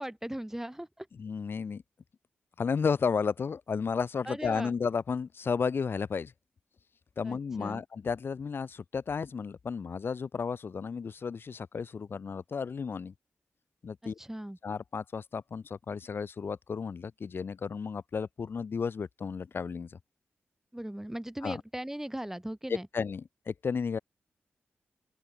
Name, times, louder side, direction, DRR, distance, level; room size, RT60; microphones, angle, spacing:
voice 1, 0.0-1.1 4.3-4.7 7.2-7.8 14.0-14.6 20.7-22.9, right 1 dB, 10° right, 1.8 m, -38 dB
voice 2, 1.2-1.8 2.6-6.3 7.2-13.1 13.8-14.2 14.6-20.0 21.4-21.6 22.7-24.0, left 5 dB, 55° left, 0.4 m, -33 dB
open air
cardioid pair, 45°, 4 cm